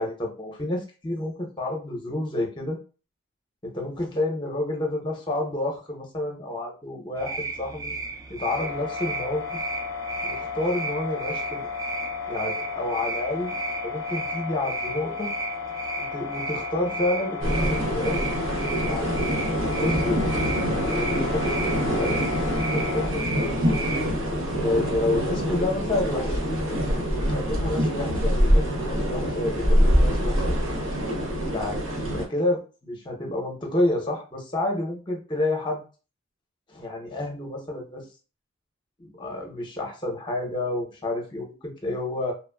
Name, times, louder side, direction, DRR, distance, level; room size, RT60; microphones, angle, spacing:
voice 1, 0.0-2.8 3.6-7.9 8.3-9.6 10.2-11.7 12.3-13.5 13.8-15.3 16.0-18.3 18.8-19.1 19.8-20.4 20.9-22.2 22.7-23.8 24.6-26.7 27.2-30.6 31.5-35.8 36.7-38.0 39.0-42.3, left 1 dB, 25° left, 1 dB, 0.7 m, -29 dB
sound 1, 7.2-24.1, right 4 dB, 15° right, 0.3 m, -35 dB
sound 2, 8.5-23.1, left 6 dB, 70° left, 0.3 m, -34 dB
sound 3, 17.4-32.3, equal, 80° right, 0.7 m, -25 dB
3.0 x 2.2 x 2.2 m, 0.35 s
head